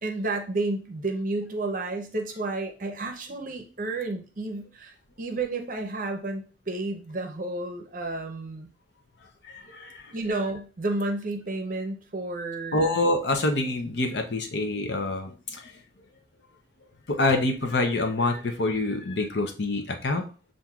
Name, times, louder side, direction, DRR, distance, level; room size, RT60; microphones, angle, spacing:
voice 1, 0.0-8.7 10.1-13.0, right 2 dB, 45° right, 4 dB, 0.6 m, -31 dB
voice 2, 9.4-10.1 12.7-15.6 17.1-20.3, left 2 dB, 60° left, 5 dB, 0.7 m, -26 dB
7.3 x 2.6 x 2.3 m, 0.36 s
head